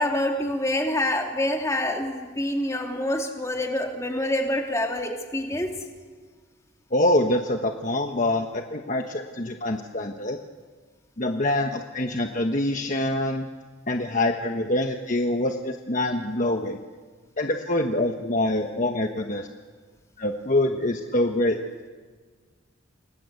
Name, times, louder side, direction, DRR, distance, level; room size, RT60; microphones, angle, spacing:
voice 1, 0.0-5.7, left 1 dB, 15° left, 2 dB, 3.0 m, -26 dB
voice 2, 6.9-10.4 11.2-13.5 13.9-16.8 17.4-19.5 20.2-21.6, left 1 dB, 40° left, 4 dB, 1.3 m, -25 dB
29.5 x 21.0 x 8.4 m, 1.5 s
head